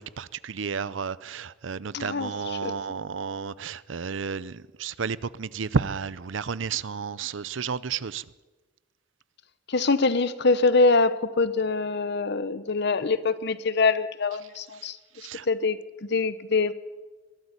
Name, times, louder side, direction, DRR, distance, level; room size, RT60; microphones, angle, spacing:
voice 1, 0.0-8.2 15.2-15.5, right 5 dB, 80° right, 0.6 m, -32 dB
voice 2, 1.9-2.7 9.7-15.0 15.5-16.7, left 3 dB, 60° left, 1.0 m, -24 dB
21.5 x 12.5 x 9.9 m
head